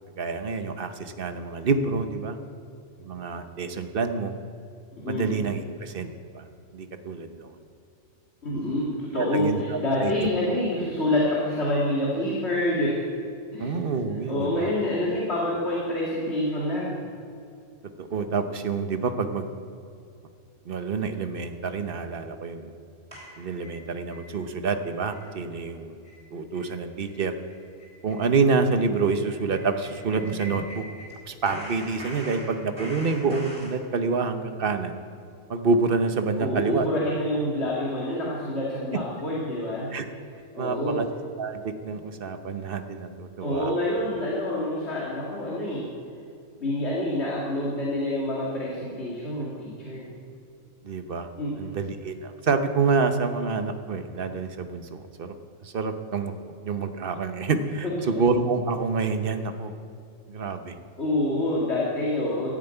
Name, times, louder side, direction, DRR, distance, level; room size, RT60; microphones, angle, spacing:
voice 1, 0.2-2.4 3.0-4.3 5.1-6.1 6.3-6.4 6.7-7.5 9.2-10.3 13.6-14.7 18.0-19.5 20.6-22.7 23.4-26.0 26.3-27.3 28.0-30.8 31.3-35.0 35.5-36.9 39.9-40.0 40.5-41.1 41.4-43.7 50.8-51.3 51.6-55.3 55.6-56.3 56.6-59.7 60.3-60.8, right 4 dB, 50° right, 8 dB, 1.0 m, -27 dB
voice 2, 5.0-5.3 8.4-13.0 13.5-13.7 14.3-17.0 36.4-39.9 40.5-41.0 43.4-45.9 46.6-50.1 51.4-51.7 57.8-57.9 61.0-62.5, left 1 dB, 55° left, -5 dB, 2.4 m, -27 dB
sound 1, 23.1-24.2 24.6-24.7 25.1-25.3 25.6-25.7 26.0-26.2 26.5-26.7 27.0-27.1 27.5-31.1 31.4-33.7, equal, 25° right, 3.6 m, -41 dB
14.0 x 7.4 x 9.0 m, 2.5 s
omnidirectional pair, 1.4 m